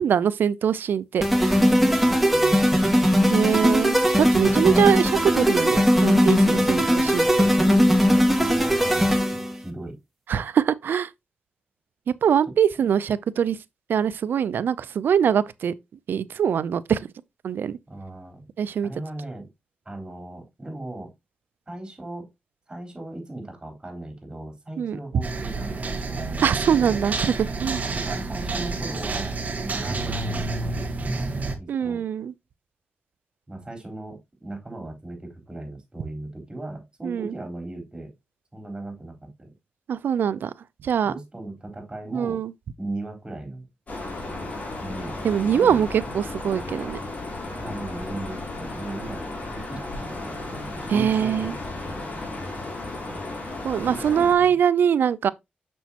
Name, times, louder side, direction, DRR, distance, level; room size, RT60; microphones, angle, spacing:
voice 1, 0.0-1.6 3.3-7.3 10.3-11.1 12.1-13.6 13.9-15.7 16.1-17.1 17.4-17.8 18.6-18.9 24.8-25.0 26.4-27.8 31.7-32.3 37.0-37.3 39.9-40.5 40.8-41.1 42.1-42.5 45.2-47.0 50.9-51.6 53.6-55.3, right 8 dB, 80° right, 0.5 m, -23 dB
sound 1, 1.2-9.5, equal, ahead, 2.0 m, -19 dB
voice 2, 1.5-3.1 4.4-4.9 6.5-7.8 8.4-10.0 17.9-18.4 18.8-19.5 19.9-21.1 21.7-22.3 22.7-26.9 28.0-32.0 33.5-38.1 38.5-39.5 41.0-42.4 42.8-43.7 44.8-45.2 45.5-45.8 47.6-52.4 53.8-54.5, right 2 dB, 25° right, 4.0 m, -38 dB
sound 2, 25.2-31.5, right 3 dB, 50° right, 1.5 m, -29 dB
sound 3, 43.9-54.3, left 2 dB, 45° left, 3.7 m, -34 dB
7.0 x 6.2 x 2.9 m
cardioid pair, 75°, 3 cm